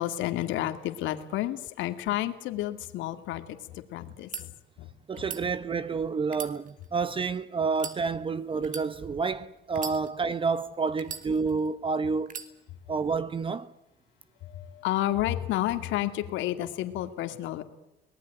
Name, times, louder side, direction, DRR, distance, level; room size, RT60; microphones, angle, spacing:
voice 1, 0.0-4.9 5.2-5.5 14.4-17.6, left 14 dB, 75° left, 2.3 m, -31 dB
sound 1, 4.1-4.4 5.1-5.4 6.2-7.2 7.7-8.0 8.6-8.9 9.7-10.4 11.0-11.7 12.3-12.5, right 7 dB, 40° right, 2.9 m, -39 dB
voice 2, 5.1-12.3 12.9-13.7, right 4 dB, 25° right, 1.0 m, -29 dB
24.0 x 19.5 x 9.2 m
cardioid pair, 120°, 20 cm